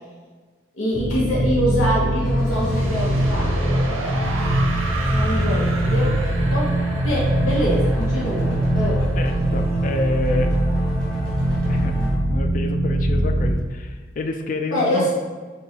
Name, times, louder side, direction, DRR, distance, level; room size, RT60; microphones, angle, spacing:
voice 1, 0.8-3.5 5.1-6.1 6.5-6.7 7.0-9.0 14.7-15.1, equal, 90° left, -5 dB, 0.8 m, -24 dB
sound 1, 0.9-13.5, right 1 dB, 30° right, 0.4 m, -22 dB
sound 2, 2.2-12.2, equal, 5° left, 1.1 m, -33 dB
sound 3, 2.5-9.4, right 3 dB, 90° right, 0.6 m, -33 dB
voice 2, 9.0-10.7 11.7-11.9 12.3-15.1, left 2 dB, 40° left, 5 dB, 0.3 m, -29 dB
5.7 x 2.3 x 2.8 m, 1.4 s
head